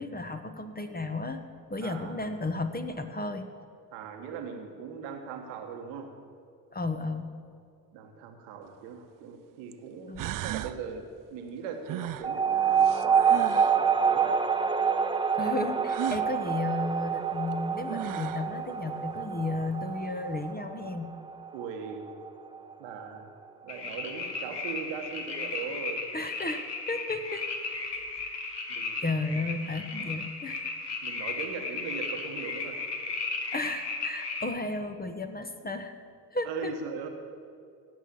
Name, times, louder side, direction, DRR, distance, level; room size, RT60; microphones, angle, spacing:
voice 1, 0.0-1.4 1.7-3.5 6.7-7.3 10.1-10.2 15.4-21.1 26.1-27.5 28.2-28.3 29.0-30.7 33.5-36.0 36.3-36.7, left 2 dB, 20° left, 7 dB, 1.1 m, -33 dB
voice 2, 1.8-2.3 3.9-6.1 7.9-14.4 21.5-22.1 22.8-23.3 23.6-26.1 28.7-29.0 30.0-30.1 31.0-32.9 36.4-37.1, right 6 dB, 75° right, 4 dB, 1.5 m, -39 dB
sound 1, 8.7-8.8 9.7-9.8 10.2-10.8 11.9-13.8 15.9-16.3 17.5-17.6 17.9-18.5, right 13 dB, 40° right, 0.6 m, -36 dB
sound 2, 12.2-23.2, right 6 dB, 10° right, 0.8 m, -27 dB
sound 3, 23.7-34.4, left 4 dB, 55° left, 2.2 m, -35 dB
17.0 x 6.2 x 8.5 m, 2.3 s
hypercardioid pair, 55°, 49 cm